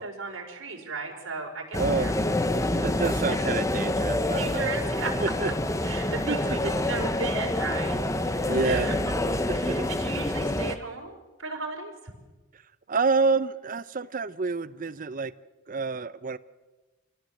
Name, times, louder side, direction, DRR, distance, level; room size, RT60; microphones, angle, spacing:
voice 1, 0.0-2.1 2.7-2.9 4.3-5.1 5.8-11.9, right 4 dB, 65° right, -1 dB, 5.2 m, -36 dB
sound 1, 1.7-10.8, left 1 dB, 15° left, 0.8 m, -27 dB
voice 2, 1.8-2.1 2.8-4.7 5.2-5.5 6.3-6.7 8.5-8.9 9.5-9.9 12.9-15.3 15.7-16.4, right 4 dB, 40° right, 15 dB, 0.6 m, -28 dB
26.0 x 17.5 x 7.8 m, 1.2 s
head